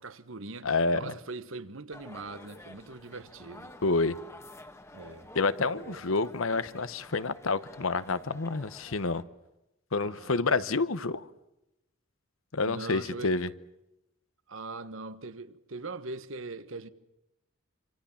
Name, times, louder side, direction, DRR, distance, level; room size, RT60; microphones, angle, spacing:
voice 1, 0.0-3.7 4.9-5.3 5.7-6.0 9.9-10.6 12.6-13.4 14.5-16.9, right 3 dB, 80° right, 1.3 m, -41 dB
voice 2, 0.6-1.1 3.8-4.2 5.3-9.2 9.9-11.3 12.5-13.5, left 3 dB, 85° left, 1.0 m, -28 dB
sound 1, 1.9-9.2, left 1 dB, 15° left, 1.4 m, -50 dB
26.5 x 26.5 x 7.2 m
head